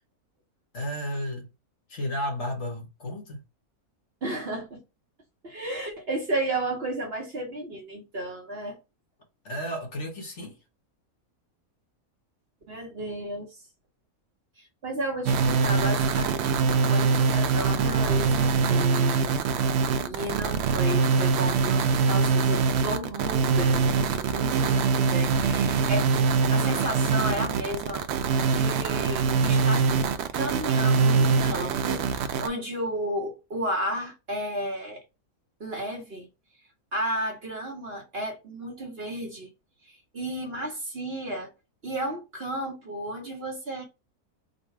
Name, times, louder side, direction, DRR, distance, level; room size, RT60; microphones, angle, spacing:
voice 1, 0.7-1.5 1.9-3.4 9.4-10.6, equal, 55° left, 1.5 m, -33 dB
voice 2, 4.2-4.8 5.4-8.8 12.7-13.5 14.6-26.1 26.5-28.1 28.4-29.8 30.3-35.0 35.6-36.3 36.9-39.5 39.8-41.5 41.8-43.8, right 1 dB, 45° right, 1.1 m, -33 dB
sound 1, 15.3-32.5, right 5 dB, 65° right, 0.6 m, -23 dB
3.9 x 2.3 x 4.4 m
omnidirectional pair, 1.5 m